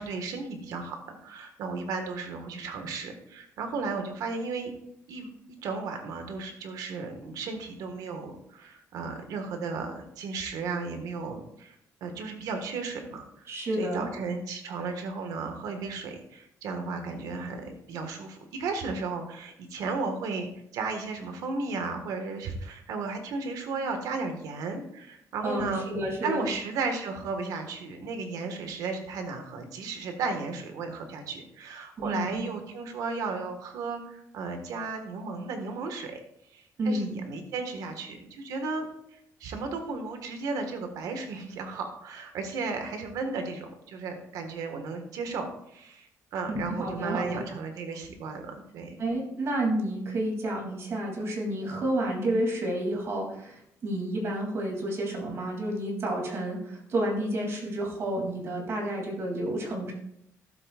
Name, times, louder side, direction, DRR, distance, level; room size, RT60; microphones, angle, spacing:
voice 1, 0.0-4.7 5.1-5.3 5.6-25.9 26.2-36.2 36.5-49.0, right 4 dB, 85° right, 5 dB, 1.7 m, -34 dB
voice 2, 13.5-14.1 25.4-26.5 32.0-32.4 36.8-37.1 46.5-47.4 49.0-59.9, right 1 dB, 45° right, 0 dB, 2.9 m, -30 dB
14.0 x 7.8 x 2.5 m, 0.76 s
cardioid pair, 140°, 6 cm